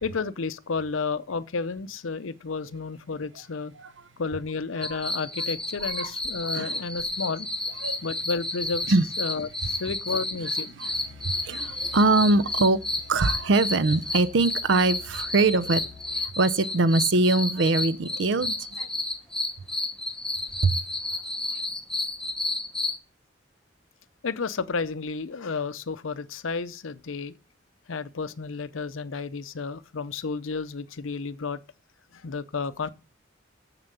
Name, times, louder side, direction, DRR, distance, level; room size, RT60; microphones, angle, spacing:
voice 1, 0.0-3.7 4.2-7.5 8.0-10.8 18.8-18.9 21.1-21.2 21.5-21.6 24.2-27.3 27.9-31.6 32.1-32.9, left 4 dB, 80° left, 0.7 m, -32 dB
sound 1, 4.8-23.0, left 2 dB, 5° left, 0.9 m, -31 dB
Musical instrument, 10.8-16.3, left 5 dB, 20° right, 4.5 m, -49 dB
voice 2, 10.8-12.8 13.1-15.8 16.2-18.6 20.6-20.8, right 3 dB, 65° right, 0.5 m, -22 dB
7.4 x 6.9 x 6.7 m
head